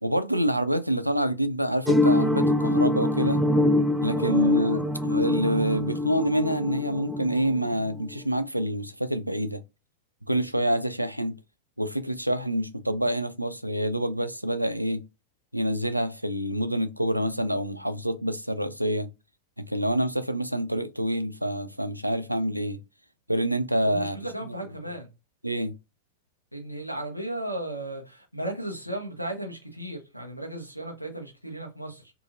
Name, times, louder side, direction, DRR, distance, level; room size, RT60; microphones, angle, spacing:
voice 1, 0.0-3.4 4.0-9.6 10.3-11.4 11.8-15.0 15.5-19.1 19.6-22.8 23.3-24.2 25.4-25.7, equal, 90° right, 0.3 m, -27 dB
sound 1, 1.9-8.1, left 1 dB, 5° right, 0.3 m, -24 dB
voice 2, 4.1-4.7 23.8-25.1 26.5-32.1, right 1 dB, 90° left, 1.0 m, -35 dB
2.8 x 2.7 x 2.4 m
figure-of-eight pair, 90°, 0 cm